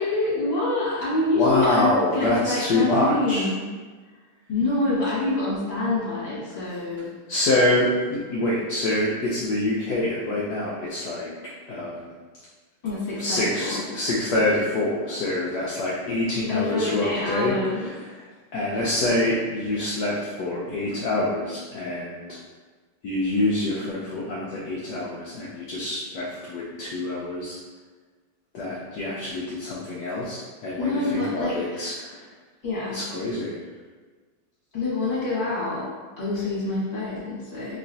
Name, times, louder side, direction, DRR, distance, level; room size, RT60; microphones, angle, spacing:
voice 1, 0.0-3.6 4.5-7.1 12.8-13.8 16.5-17.9 30.8-32.0 32.6-33.0 34.7-35.9 36.2-37.8, left 2 dB, 25° left, -10 dB, 1.3 m, -26 dB
voice 2, 1.3-3.5 7.3-11.3 11.7-12.1 13.2-22.4 23.0-27.6 28.5-32.3 32.9-33.6, left 1 dB, 75° left, -6 dB, 1.0 m, -26 dB
3.0 x 3.0 x 2.6 m, 1.4 s
omnidirectional pair, 2.2 m